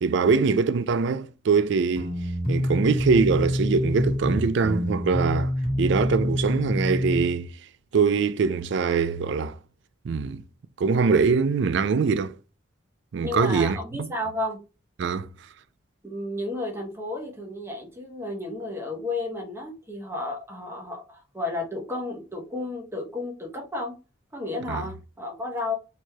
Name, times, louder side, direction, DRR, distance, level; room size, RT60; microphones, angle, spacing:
voice 1, 0.0-2.2 2.5-5.5 5.8-7.5 7.9-9.6 10.0-10.4 10.8-12.4 13.1-14.1 15.0-15.3 24.7-24.8, right 5 dB, 60° right, 0.3 m, -23 dB
sound 1, 1.9-7.3, left 1 dB, 25° left, 1.7 m, -26 dB
voice 2, 13.2-14.6 16.1-24.0 24.3-25.7, left 2 dB, 15° right, 1.0 m, -32 dB
4.4 x 3.1 x 2.2 m
head